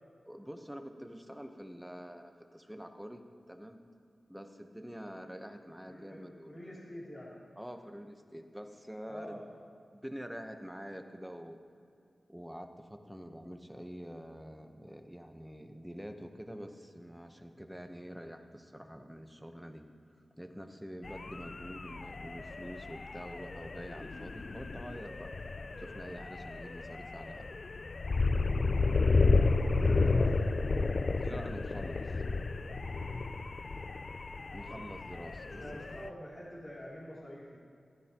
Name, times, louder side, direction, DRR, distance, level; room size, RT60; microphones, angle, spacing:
voice 1, 0.3-3.2 3.5-3.8 4.3-6.5 7.6-9.4 9.9-11.6 12.3-19.9 20.4-25.3 25.8-27.5 31.2-32.2 34.5-35.6, equal, 5° right, 6 dB, 1.0 m, -46 dB
voice 2, 5.8-7.3 9.1-9.5 29.2-30.7 34.5-34.9 35.6-37.6, equal, 30° left, -7 dB, 3.0 m, -46 dB
sound 1, 21.0-36.1, left 3 dB, 55° left, 0.3 m, -32 dB
15.0 x 13.0 x 3.0 m, 2.6 s
cardioid pair, 55°, 0 cm